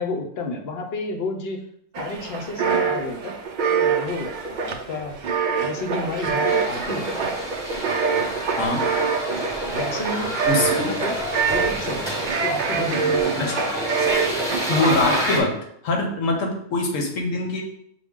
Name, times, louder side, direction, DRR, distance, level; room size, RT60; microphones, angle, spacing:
voice 1, 0.0-1.6 2.0-3.4 3.7-5.2 5.6-7.3 9.7-10.3 10.7-11.2 11.5-13.8, left 3 dB, 60° left, 3 dB, 0.8 m, -31 dB
sound 1, 1.9-15.4, right 6 dB, 70° right, 0.4 m, -25 dB
sound 2, 6.4-15.4, equal, 5° left, 1.0 m, -29 dB
voice 2, 8.6-8.9 10.5-10.9 13.4-13.5 14.7-15.6 15.8-17.6, left 2 dB, 85° left, 2 dB, 1.2 m, -23 dB
6.0 x 2.2 x 3.5 m, 0.68 s
omnidirectional pair, 1.3 m